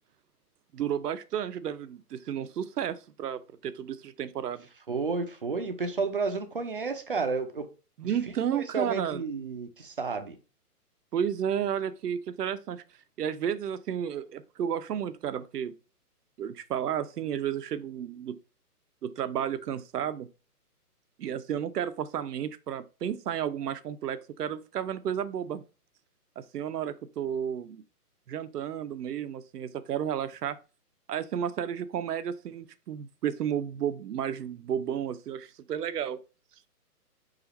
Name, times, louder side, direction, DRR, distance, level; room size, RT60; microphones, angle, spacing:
voice 1, 0.7-4.7 8.0-9.2 11.1-12.8 13.2-15.7 16.4-18.4 19.0-20.3 21.2-25.6 26.4-27.8 28.3-30.6 31.1-36.2, right 9 dB, 80° right, 0.7 m, -32 dB
voice 2, 4.9-7.6 8.0-8.1 8.5-10.4, right 4 dB, 35° right, 0.5 m, -31 dB
4.9 x 2.5 x 4.2 m
hypercardioid pair, 160°, 47 cm